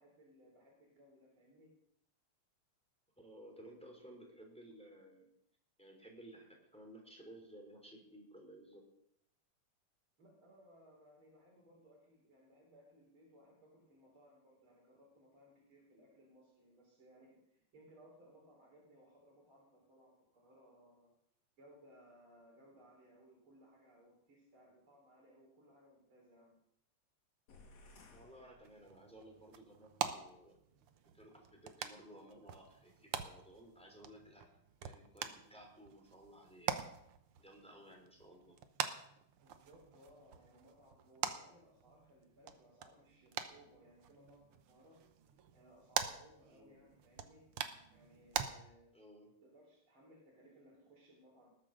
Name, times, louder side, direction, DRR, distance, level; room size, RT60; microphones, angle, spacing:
voice 1, 0.0-1.7 10.2-21.1 21.6-26.6 39.4-45.0 45.5-47.5 47.9-48.9 49.4-51.5, equal, 45° right, -4 dB, 4.4 m, -63 dB
voice 2, 3.2-5.3 5.8-8.8 28.1-30.6 31.1-34.5 34.8-36.9 37.4-38.6 46.5-46.8 48.9-49.3, right 1 dB, ahead, 1 dB, 3.2 m, -57 dB
sound 1, 27.5-29.3, left 2 dB, 65° left, 3.2 m, -61 dB
sound 2, 28.6-48.5, right 9 dB, 65° right, 1.5 m, -45 dB
20.0 x 7.9 x 6.3 m, 0.75 s
omnidirectional pair, 3.4 m